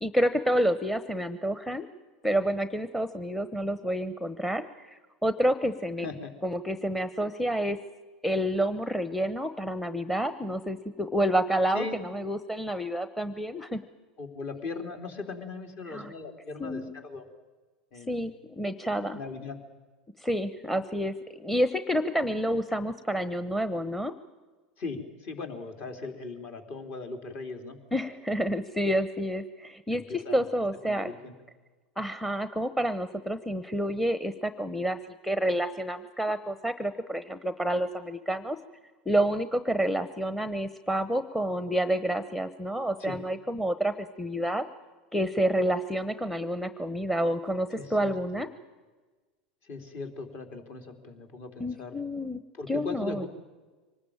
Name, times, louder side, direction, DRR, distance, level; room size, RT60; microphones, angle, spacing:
voice 1, 0.0-1.9 2.2-6.1 6.4-7.8 8.2-13.8 15.9-16.1 16.6-16.9 18.1-19.2 20.2-24.1 27.9-31.1 32.0-38.6 39.1-44.6 45.1-48.5 51.6-52.4 52.7-53.2, equal, 5° left, 13 dB, 1.0 m, -29 dB
voice 2, 6.0-6.3 11.7-12.0 14.2-17.2 17.9-18.3 19.1-19.6 24.8-27.8 29.9-30.5 30.8-31.3 43.0-43.2 47.8-48.4 49.6-52.0 52.6-53.3, left 4 dB, 45° left, 5 dB, 3.8 m, -39 dB
24.5 x 20.0 x 8.9 m, 1.3 s
hypercardioid pair, 90°, 5 cm